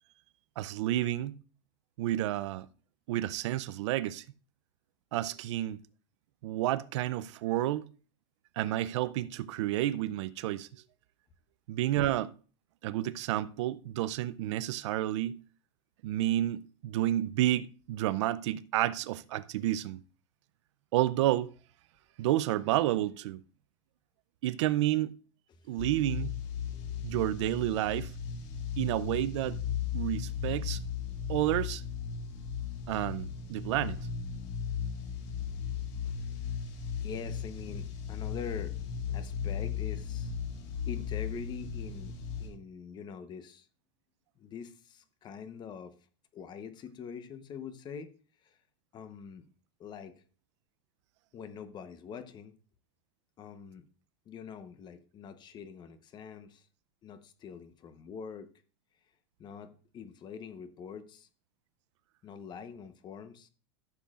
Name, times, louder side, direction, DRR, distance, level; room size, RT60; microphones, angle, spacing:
voice 1, 0.6-1.3 2.0-2.7 3.1-4.2 5.1-5.8 6.4-7.8 8.6-10.7 11.7-12.3 12.8-15.4 16.0-20.0 20.9-21.5 22.2-23.4 24.4-25.1 25.7-26.4 27.0-28.1 28.8-29.6 29.9-30.8 31.3-31.8 32.9-34.1, right 14 dB, 70° right, 0.5 m, -30 dB
sound 1, 25.8-42.5, left 7 dB, 45° left, 1.8 m, -36 dB
voice 2, 26.7-27.1 36.0-36.2 36.5-36.6 37.0-38.8 39.1-40.4 40.9-42.1 42.4-43.7 44.4-45.9 46.3-48.1 48.4-48.6 48.9-49.4 49.8-50.2 51.3-52.5 53.4-53.8 54.3-56.7 57.0-58.5 59.4-61.3 62.2-63.5, left 7 dB, 30° left, 0.9 m, -44 dB
14.0 x 7.1 x 2.4 m
supercardioid pair, 140°, 15 cm